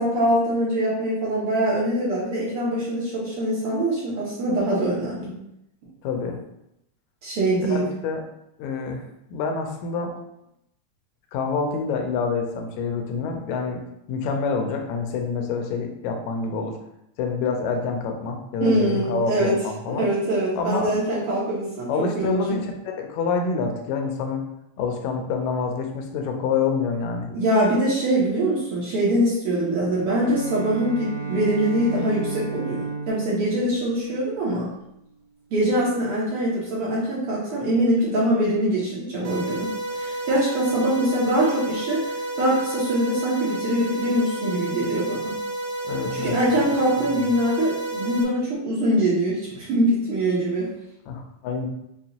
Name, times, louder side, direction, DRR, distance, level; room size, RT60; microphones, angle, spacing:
voice 1, 0.0-5.3 7.2-7.8 18.6-19.5 19.9-22.6 27.3-34.7 35.5-45.3 46.1-50.7, right 1 dB, 70° right, -7 dB, 1.4 m, -23 dB
voice 2, 6.0-6.4 7.7-8.2 8.6-9.0 9.3-10.1 11.3-13.8 14.1-16.8 17.2-20.0 20.6-20.9 21.9-24.4 24.8-27.3 45.8-46.6 47.0-47.3 51.1-51.7, left 4 dB, 80° left, 3 dB, 1.8 m, -27 dB
Bowed string instrument, 30.0-34.9, right 4 dB, 45° right, 1.1 m, -33 dB
sound 1, 39.2-48.2, right 1 dB, 90° right, 2.2 m, -30 dB
5.4 x 2.3 x 2.8 m, 0.82 s
omnidirectional pair, 3.5 m